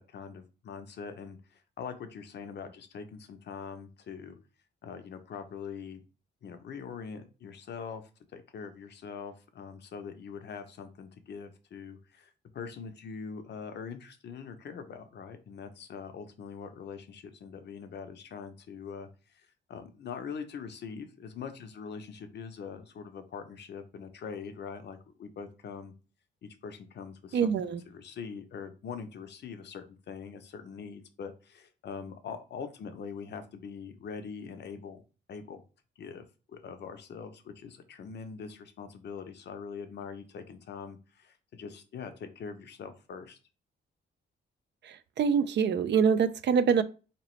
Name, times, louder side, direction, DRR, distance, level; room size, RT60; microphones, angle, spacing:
voice 1, 0.0-4.4 4.8-6.0 6.4-8.0 8.3-12.3 12.5-25.9 26.4-35.0 35.3-35.6 36.0-43.4, left 6 dB, 60° left, 0.7 m, -43 dB
voice 2, 27.3-27.8 45.2-46.8, right 6 dB, 60° right, 0.4 m, -24 dB
3.9 x 2.9 x 3.0 m
cardioid pair, 90°, 20 cm